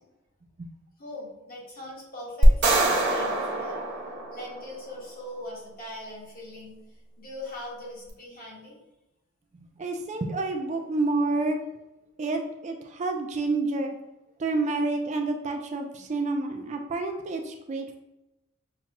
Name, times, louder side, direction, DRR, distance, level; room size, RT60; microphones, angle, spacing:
voice 1, 1.0-3.8 4.3-6.8 7.2-8.7, left 1 dB, 45° left, -5 dB, 1.4 m, -40 dB
sound 1, 2.4-4.8, right 1 dB, 60° right, 1.0 m, -24 dB
voice 2, 9.8-11.6 12.2-13.9 14.4-18.0, right 3 dB, 35° right, 4 dB, 0.4 m, -29 dB
5.7 x 2.3 x 2.9 m, 0.94 s
head